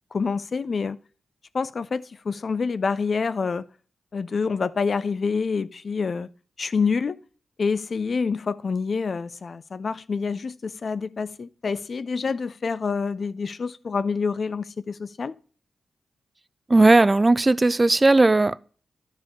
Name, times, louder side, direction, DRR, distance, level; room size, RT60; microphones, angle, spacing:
voice 1, 0.1-1.0 1.5-3.6 4.1-6.3 6.6-7.2 7.6-15.3, left 5 dB, 60° left, 0.4 m, -27 dB
voice 2, 16.7-18.6, right 2 dB, 30° right, 0.3 m, -17 dB
11.0 x 4.9 x 3.6 m
cardioid pair, 45°, 0 cm